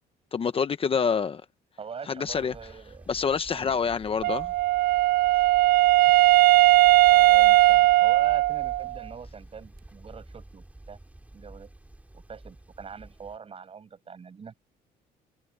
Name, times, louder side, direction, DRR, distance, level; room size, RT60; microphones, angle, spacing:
voice 1, 0.3-1.4 2.1-2.5 3.1-4.5, left 6 dB, 35° left, 1.0 m, -26 dB
voice 2, 1.8-3.2 3.5-4.0 7.1-11.0 11.3-11.7 12.1-14.5, right 6 dB, 35° right, 7.0 m, -43 dB
sound 1, 2.3-13.4, right 1 dB, 10° right, 3.1 m, -49 dB
Wind instrument woodwind instrument, 4.2-9.0, right 17 dB, 60° right, 0.4 m, -18 dB
cardioid pair, 110°, 17 cm